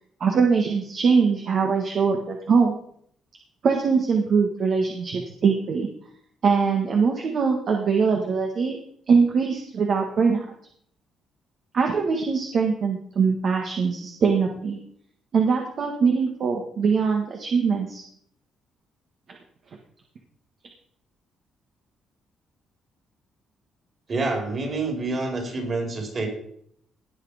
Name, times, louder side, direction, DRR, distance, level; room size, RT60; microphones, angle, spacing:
voice 1, 0.2-2.8 3.6-5.9 6.4-8.8 9.1-10.4 11.7-14.8 15.3-18.0, right 5 dB, 55° right, 2 dB, 1.7 m, -22 dB
voice 2, 24.1-26.3, right 3 dB, 40° right, 2 dB, 4.7 m, -27 dB
18.5 x 6.4 x 5.1 m, 0.66 s
cardioid pair, 90°, 0 cm